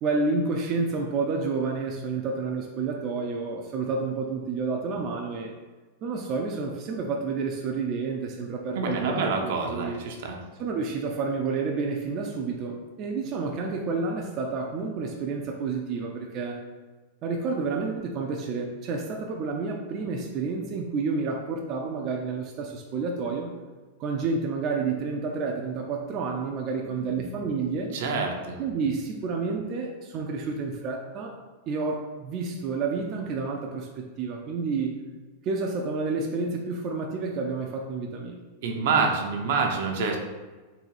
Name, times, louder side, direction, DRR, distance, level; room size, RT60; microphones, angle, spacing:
voice 1, 0.0-5.5 6.0-10.0 10.6-16.6 17.2-23.5 24.0-27.9 28.6-31.3 31.7-35.0 35.4-38.4, right 4 dB, 35° right, 0 dB, 0.5 m, -30 dB
voice 2, 8.7-10.4 27.9-28.6 38.6-40.2, right 4 dB, 70° right, 2 dB, 0.8 m, -27 dB
4.0 x 2.7 x 4.8 m, 1.3 s
supercardioid pair, 140°, 0 cm